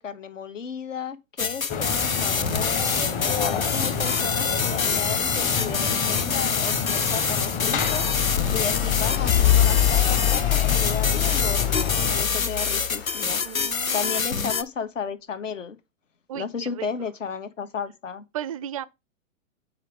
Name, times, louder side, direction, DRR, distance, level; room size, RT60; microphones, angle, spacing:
voice 1, 0.0-3.0 3.4-13.4 13.9-15.8 16.3-18.3, left 6 dB, 70° left, 1.4 m, -34 dB
sound 1, 1.4-14.6, left 5 dB, 90° left, 0.8 m, -26 dB
sound 2, 1.7-12.2, left 6 dB, 20° left, 1.0 m, -29 dB
sound 3, 7.7-13.7, left 12 dB, 50° left, 2.1 m, -25 dB
voice 2, 13.4-14.2 16.3-16.9 18.3-18.9, right 10 dB, 30° right, 0.4 m, -35 dB
7.3 x 4.8 x 5.2 m
figure-of-eight pair, 120°, 40 cm